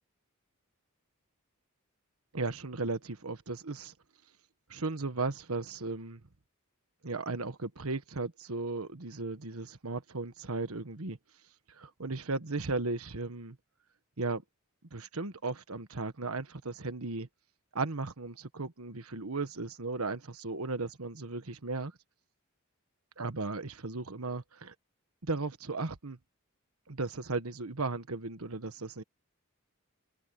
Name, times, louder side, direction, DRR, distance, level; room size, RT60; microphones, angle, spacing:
voice 1, 2.3-3.9 4.7-6.2 7.0-11.2 11.7-13.6 14.2-14.4 14.9-17.3 17.7-21.9 23.2-24.7 25.2-26.2 26.9-29.0, right 3 dB, 85° right, 1.4 m, -36 dB
head